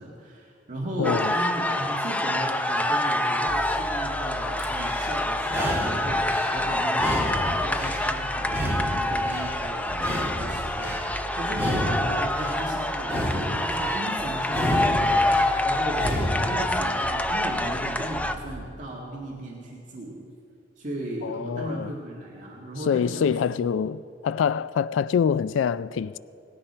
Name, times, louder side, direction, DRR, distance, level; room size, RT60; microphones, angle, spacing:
voice 1, 0.0-20.2 20.8-23.6, right 1 dB, 45° right, 1.9 m, -36 dB
voice 2, 1.0-1.3 21.2-21.9 22.8-26.2, left 7 dB, 85° left, 0.3 m, -25 dB
sound 1, 1.0-18.3, left 1 dB, 10° left, 0.6 m, -26 dB
sound 2, 3.5-5.6 6.1-13.2 13.7-18.7, right 1 dB, 70° right, 1.1 m, -40 dB
sound 3, 4.6-5.1 5.4-6.5 6.9-8.1 8.4-9.5 9.9-11.0 11.5-12.6 13.0-14.0 14.5-15.5 15.9-16.5, equal, 15° right, 2.9 m, -30 dB
19.0 x 16.5 x 4.3 m
head